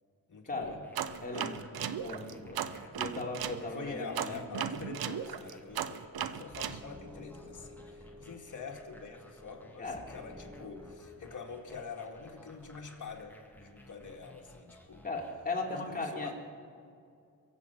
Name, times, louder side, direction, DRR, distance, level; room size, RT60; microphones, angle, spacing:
voice 1, 0.3-0.8 1.3-1.6 1.8-2.2 2.8-3.2 3.7-15.0 15.7-16.3, left 5 dB, 55° left, 2 dB, 2.0 m, -45 dB
sound 1, 0.6-15.3, left 1 dB, 5° left, 1.9 m, -57 dB
sound 2, 0.9-3.6 4.1-6.8, right 9 dB, 85° right, 0.7 m, -36 dB
voice 2, 1.2-2.6 2.9-4.4 9.8-10.0 15.0-16.3, left 2 dB, 25° left, -2 dB, 3.3 m, -37 dB
sound 3, 6.4-11.0, left 1 dB, 15° right, 1.6 m, -53 dB
23.5 x 7.9 x 5.8 m, 2.4 s
cardioid pair, 70°, 35 cm